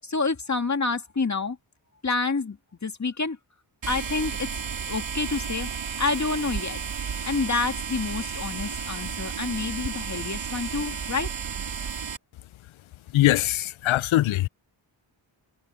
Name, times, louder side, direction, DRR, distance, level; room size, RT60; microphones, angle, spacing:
voice 1, 0.0-1.6 2.0-2.6 2.8-3.4 3.9-4.5 4.9-5.7 6.0-6.8 7.2-11.3, left 4 dB, 35° left, 2.1 m, -28 dB
sound 1, 3.8-12.2, right 6 dB, 65° right, 2.8 m, -33 dB
voice 2, 13.1-14.5, left 15 dB, 80° left, 0.6 m, -22 dB
cardioid pair, 50°, 47 cm